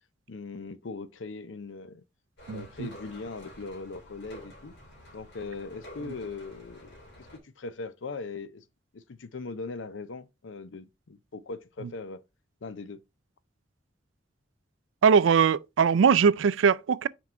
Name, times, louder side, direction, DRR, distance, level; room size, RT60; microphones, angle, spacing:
voice 1, 0.3-2.0 2.5-4.7 5.1-8.6 8.9-12.2 12.6-13.0, left 3 dB, 80° left, 0.6 m, -40 dB
sound 1, 2.4-7.4, left 1 dB, 65° left, 2.8 m, -49 dB
voice 2, 2.5-2.9 15.0-17.1, right 6 dB, 85° right, 0.4 m, -21 dB
6.0 x 4.6 x 4.3 m
head